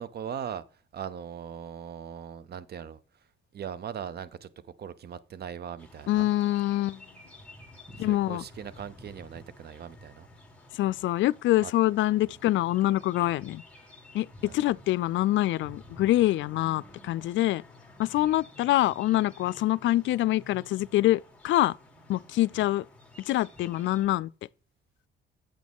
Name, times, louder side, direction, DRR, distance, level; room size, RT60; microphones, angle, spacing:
voice 1, 0.0-3.2 3.5-6.3 8.0-10.3 11.6-11.7 12.2-12.3 14.4-14.7 18.1-18.4 22.5-22.7, right 8 dB, 55° right, 0.8 m, -40 dB
sound 1, 5.8-24.1, left 1 dB, 5° left, 2.0 m, -52 dB
voice 2, 6.1-7.0 8.0-8.4 10.7-13.6 14.1-14.3 14.5-17.6 18.0-21.7 22.1-22.8 23.3-24.3, left 15 dB, 70° left, 0.4 m, -25 dB
8.4 x 6.2 x 3.6 m
cardioid pair, 90°, 20 cm